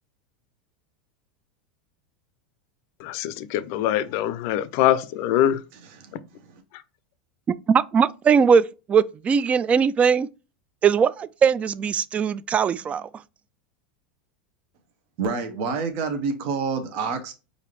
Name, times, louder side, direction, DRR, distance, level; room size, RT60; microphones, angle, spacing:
voice 1, 3.0-5.6, left 12 dB, 55° left, 0.5 m, -23 dB
voice 2, 7.7-10.3 10.8-13.1, right 6 dB, 25° right, 0.3 m, -20 dB
voice 3, 15.2-17.3, right 5 dB, 55° right, 0.9 m, -27 dB
4.9 x 2.6 x 3.0 m
hypercardioid pair, 90°, 5 cm